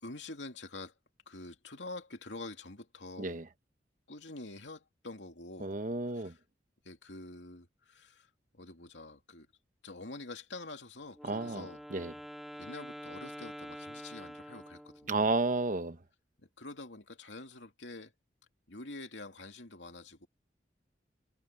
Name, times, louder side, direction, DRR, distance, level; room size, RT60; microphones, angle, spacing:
voice 1, 0.0-0.9 1.3-3.4 4.1-5.8 6.1-6.4 6.8-9.5 9.8-11.8 12.5-15.3 16.4-18.1 18.7-20.3, left 2 dB, 85° left, 2.8 m, -46 dB
voice 2, 5.6-6.3 11.2-11.6 11.9-12.1 15.1-16.0, right 3 dB, 50° right, 1.0 m, -31 dB
Wind instrument woodwind instrument, 11.1-15.2, equal, ahead, 2.8 m, -46 dB
head